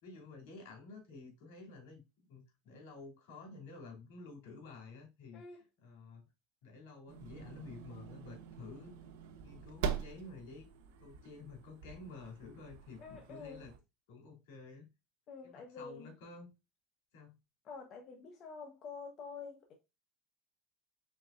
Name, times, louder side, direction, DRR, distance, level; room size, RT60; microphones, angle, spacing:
voice 1, 0.0-6.3 6.6-9.0 9.4-10.7 11.0-13.7 14.1-14.9 15.4-16.5 17.1-17.4, left 3 dB, 85° left, 2.7 m, -51 dB
sound 1, 7.1-13.8, right 7 dB, 85° right, 0.8 m, -44 dB
voice 2, 13.0-13.6 15.3-16.1 17.6-19.7, left 5 dB, 40° left, 0.9 m, -48 dB
4.5 x 4.0 x 2.5 m
supercardioid pair, 140°, 0 cm